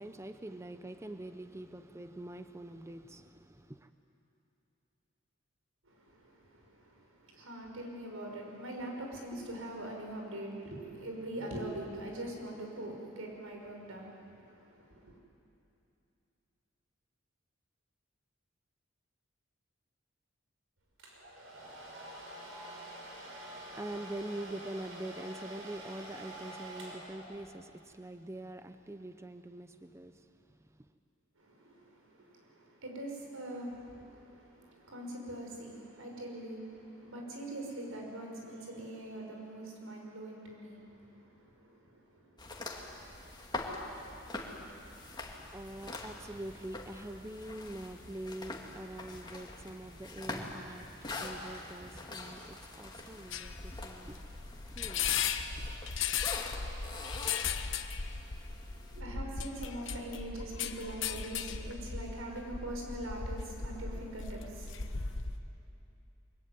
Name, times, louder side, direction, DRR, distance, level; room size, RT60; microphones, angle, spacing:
voice 1, 0.0-3.9 23.5-30.9 44.4-55.6, right 1 dB, 15° right, 0.7 m, -45 dB
voice 2, 5.8-15.2 31.4-43.1 58.2-65.1, right 1 dB, 90° right, 5.7 m, -43 dB
Domestic sounds home sounds, 21.0-27.7, right 1 dB, 70° right, 5.5 m, -47 dB
sound 1, 42.4-59.0, left 2 dB, 20° left, 2.3 m, -44 dB
sound 2, 53.3-65.4, left 6 dB, 65° left, 1.1 m, -37 dB
23.5 x 23.5 x 9.5 m
head